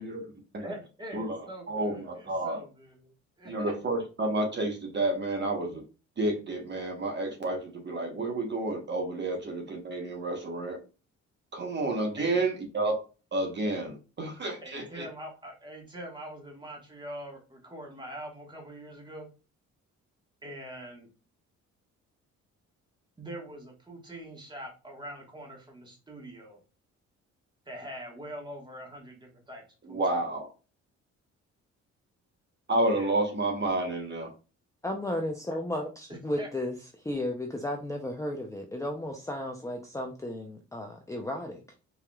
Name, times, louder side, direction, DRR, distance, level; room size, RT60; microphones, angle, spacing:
voice 1, 0.6-3.7 12.2-12.4 14.6-19.3 20.4-21.1 23.2-26.6 27.6-30.2 32.9-33.1 36.1-36.5, right 1 dB, 15° right, 0 dB, 1.5 m, -43 dB
voice 2, 1.7-2.6 3.4-5.8 6.2-10.8 11.5-13.0 13.3-15.1 29.8-30.5 32.7-34.3, right 2 dB, 35° right, 2 dB, 1.1 m, -30 dB
voice 3, 34.8-41.6, left 1 dB, 10° left, 2 dB, 0.6 m, -34 dB
4.8 x 2.8 x 2.3 m, 0.33 s
cardioid pair, 90°, 30 cm